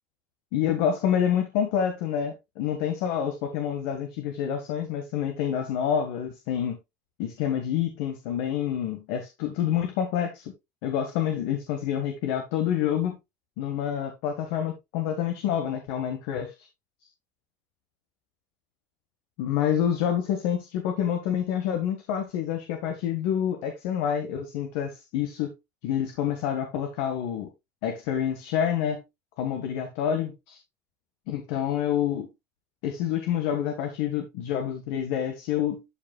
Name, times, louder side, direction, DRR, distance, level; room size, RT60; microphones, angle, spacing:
voice 1, 0.5-6.8 7.2-10.5 10.8-13.2 13.6-16.7 19.4-25.5 25.8-27.5 27.8-29.0 29.4-30.6 31.3-32.3 32.8-35.8, left 9 dB, 75° left, 1.7 m, -28 dB
12.0 x 5.5 x 2.3 m
supercardioid pair, 125°, 9 cm